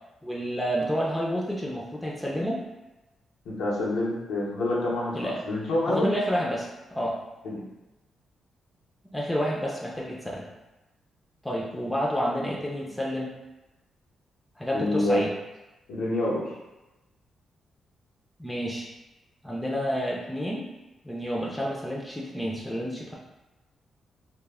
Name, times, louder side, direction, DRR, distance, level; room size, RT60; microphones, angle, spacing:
voice 1, 0.2-2.7 5.1-5.4 5.9-7.2 9.1-10.5 11.4-13.4 14.6-15.3 18.4-18.9 19.4-20.7 21.0-23.1, equal, 5° left, -4 dB, 0.4 m, -29 dB
voice 2, 3.4-6.1 7.4-7.6 14.7-15.2 15.9-16.5, left 1 dB, 85° left, -5 dB, 0.7 m, -27 dB
2.2 x 2.0 x 3.3 m, 1.0 s
cardioid pair, 75°, 0 cm